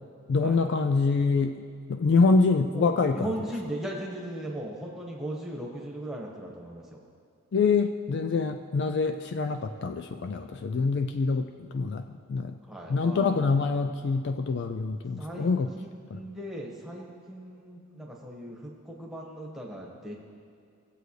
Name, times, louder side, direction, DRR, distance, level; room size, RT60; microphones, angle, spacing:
voice 1, 0.3-1.6 1.9-3.3 7.5-12.0 12.3-12.5 12.9-15.7 16.1-16.2, left 4 dB, 50° left, 8 dB, 0.3 m, -25 dB
voice 2, 2.7-7.1 12.6-13.7 15.2-20.2, right 1 dB, ahead, -3 dB, 1.3 m, -38 dB
18.0 x 7.9 x 3.2 m, 2.4 s
head